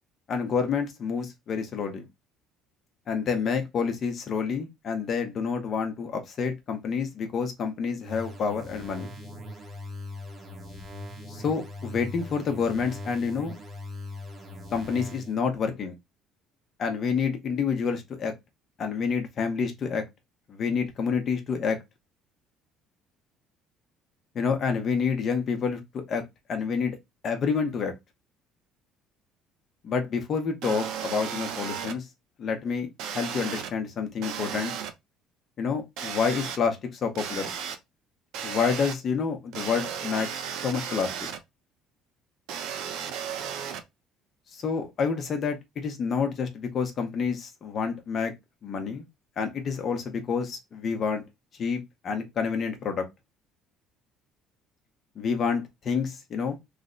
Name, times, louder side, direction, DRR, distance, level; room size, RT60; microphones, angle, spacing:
voice 1, 0.3-2.1 3.1-9.1 11.3-13.6 14.7-16.0 16.8-18.3 18.8-20.0 20.5-21.8 24.3-26.2 26.5-27.0 27.2-27.9 29.8-32.1 32.4-34.7 35.6-37.5 38.4-40.3 40.6-41.3 44.5-48.3 48.6-49.0 49.4-51.2 51.6-53.1 55.2-56.6, left 5 dB, 35° left, 0.7 m, -28 dB
sound 1, 8.0-15.4, left 2 dB, 25° right, 0.8 m, -40 dB
sound 2, 30.6-31.9 33.0-33.7 34.2-34.9 36.0-36.6 37.1-37.7 38.3-38.9 39.5-41.4 42.5-43.8, right 8 dB, 70° right, 0.5 m, -34 dB
3.2 x 2.0 x 3.8 m
cardioid pair, 155°, 0 cm